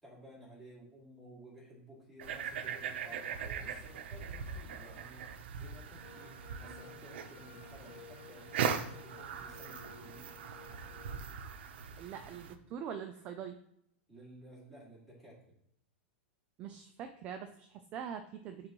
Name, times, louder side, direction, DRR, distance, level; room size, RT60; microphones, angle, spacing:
voice 1, 0.0-10.3 14.1-15.4, right 1 dB, ahead, -7 dB, 2.2 m, -55 dB
sound 1, 2.2-12.5, right 7 dB, 65° right, 0.7 m, -40 dB
sound 2, 6.0-11.2, left 6 dB, 80° left, 1.4 m, -55 dB
voice 2, 12.0-13.5 16.6-18.7, right 8 dB, 20° right, 7 dB, 0.4 m, -43 dB
9.5 x 3.9 x 3.0 m, 0.72 s
supercardioid pair, 175°, 6 cm